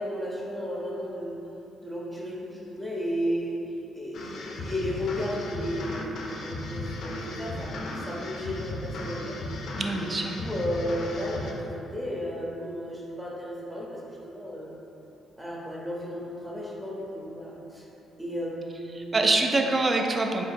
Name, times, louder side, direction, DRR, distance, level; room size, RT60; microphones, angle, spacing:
voice 1, 0.0-1.4 1.8-3.6 3.9-6.1 6.4-9.4 10.0-14.7 15.4-17.9 18.2-19.5, equal, 5° right, -4 dB, 0.7 m, -34 dB
sound 1, 4.1-11.5, left 2 dB, 65° left, 0.4 m, -36 dB
voice 2, 9.8-10.4 19.0-20.4, right 2 dB, 30° right, 3 dB, 0.4 m, -25 dB
4.3 x 2.8 x 2.6 m, 3.0 s
cardioid pair, 90°, 0 cm